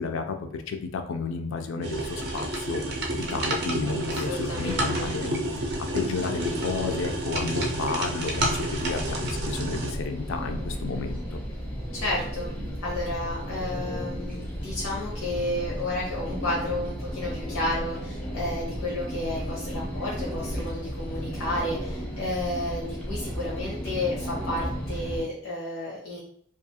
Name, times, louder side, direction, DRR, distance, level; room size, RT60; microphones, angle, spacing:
voice 1, 0.0-5.5 5.8-11.2, left 4 dB, 65° left, 6 dB, 0.4 m, -32 dB
sound 1, 1.8-9.9, right 1 dB, 50° right, 0.5 m, -30 dB
voice 2, 4.1-5.1 11.9-12.5 12.8-26.2, left 1 dB, 90° left, -5 dB, 0.7 m, -32 dB
sound 2, 8.4-25.2, equal, 5° left, 0.5 m, -34 dB
2.4 x 2.3 x 2.7 m, 0.65 s
head